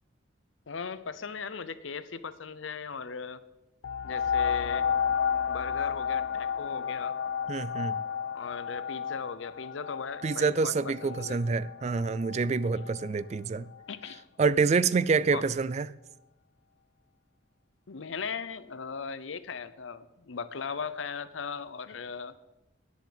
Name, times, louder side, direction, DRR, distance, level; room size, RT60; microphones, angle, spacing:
voice 1, 0.7-3.4 4.0-4.9 5.5-7.2 8.3-11.4 12.7-12.9 13.9-14.2 15.3-15.5 17.9-22.4, left 5 dB, 85° left, 0.7 m, -38 dB
sound 1, 3.8-13.1 13.7-13.8, left 7 dB, 65° left, 0.3 m, -32 dB
voice 2, 7.5-7.9 10.2-13.7 14.4-15.9, right 4 dB, 35° right, 0.3 m, -27 dB
11.0 x 6.9 x 7.8 m
head